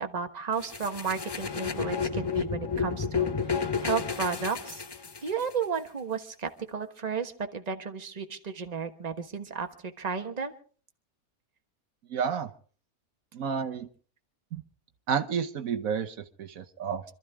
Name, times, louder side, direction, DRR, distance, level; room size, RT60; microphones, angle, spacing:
voice 1, 0.0-4.8 5.2-10.5, right 6 dB, 30° right, 6 dB, 1.4 m, -33 dB
sound 1, 0.6-5.5, left 6 dB, 35° left, 0.4 m, -31 dB
voice 2, 12.1-12.5 13.3-13.9 14.5-14.6 15.1-17.0, right 7 dB, 75° right, 8 dB, 1.3 m, -30 dB
26.5 x 13.5 x 3.5 m, 0.42 s
omnidirectional pair, 1.5 m